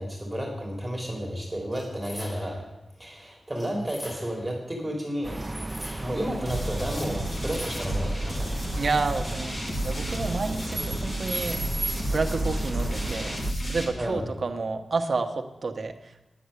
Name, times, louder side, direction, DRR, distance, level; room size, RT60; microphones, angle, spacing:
voice 1, 0.0-2.6 3.0-5.4 6.0-8.5 14.0-14.2, equal, 10° right, -1 dB, 2.8 m, -32 dB
sound 1, 1.7-2.7 3.5-4.5 5.4-6.3 7.1-8.1, equal, 15° left, 5.0 m, -44 dB
sound 2, 5.2-13.5, right 2 dB, 25° right, 0.5 m, -35 dB
sound 3, 6.5-13.9, right 1 dB, 45° left, 3.1 m, -31 dB
voice 2, 8.7-9.5 9.8-11.6 12.1-13.4 13.7-16.2, right 4 dB, 55° right, 6 dB, 1.1 m, -29 dB
10.0 x 7.7 x 8.3 m, 1.0 s
wide cardioid pair, 100°, 0 cm